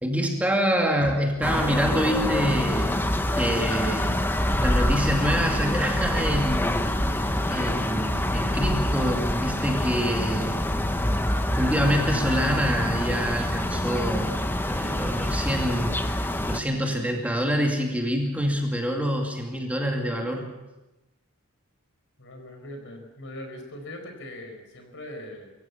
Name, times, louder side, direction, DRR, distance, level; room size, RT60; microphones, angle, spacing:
voice 1, 0.0-2.9 3.3-4.1 4.6-10.7 11.6-14.4 14.6-20.5, equal, 5° right, 1 dB, 2.4 m, -26 dB
sound 1, 1.4-16.6, left 1 dB, 10° left, 1.1 m, -26 dB
voice 2, 22.2-25.5, left 1 dB, 60° left, 5 dB, 5.1 m, -40 dB
24.0 x 16.0 x 7.2 m, 1.0 s
head